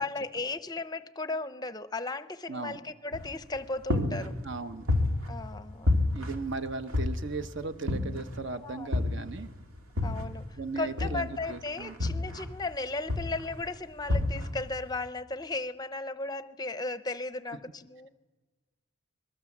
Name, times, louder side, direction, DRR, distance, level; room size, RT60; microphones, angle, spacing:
voice 1, 0.0-4.3 5.3-5.9 8.6-8.9 10.0-10.4 10.8-18.1, left 3 dB, 20° left, 13 dB, 0.7 m, -35 dB
voice 2, 2.5-2.8 4.4-4.8 6.1-9.5 10.6-12.0, right 3 dB, 55° right, 10 dB, 1.0 m, -37 dB
sound 1, 3.1-3.6 3.9-5.6 5.9-7.5 7.9-8.4 8.9-10.5 11.0-12.7 13.1-13.6 14.1-14.7, left 2 dB, 80° right, 2.1 m, -30 dB
25.5 x 22.0 x 7.3 m, 1.3 s
head